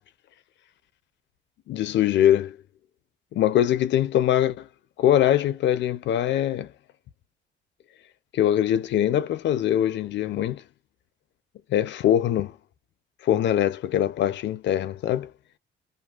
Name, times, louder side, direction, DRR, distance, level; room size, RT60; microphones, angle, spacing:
voice 1, 1.7-2.6 3.3-4.7 5.0-6.7 8.3-10.6 11.7-12.5 13.2-15.3, left 11 dB, 70° left, 0.4 m, -22 dB
2.6 x 2.5 x 2.3 m
cardioid pair, 90°, 20 cm